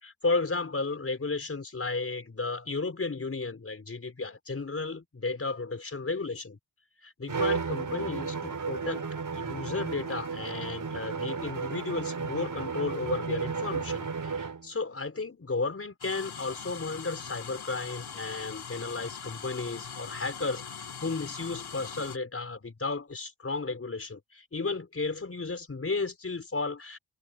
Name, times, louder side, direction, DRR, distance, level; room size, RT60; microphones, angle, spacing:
voice 1, 0.0-6.6 7.0-27.0, left 3 dB, 30° left, 4.8 m, -34 dB
Bowed string instrument, 7.3-14.7, right 5 dB, 40° right, 6.4 m, -33 dB
sound 1, 16.0-22.2, left 7 dB, 50° left, 2.5 m, -41 dB
cardioid pair, 90°, 48 cm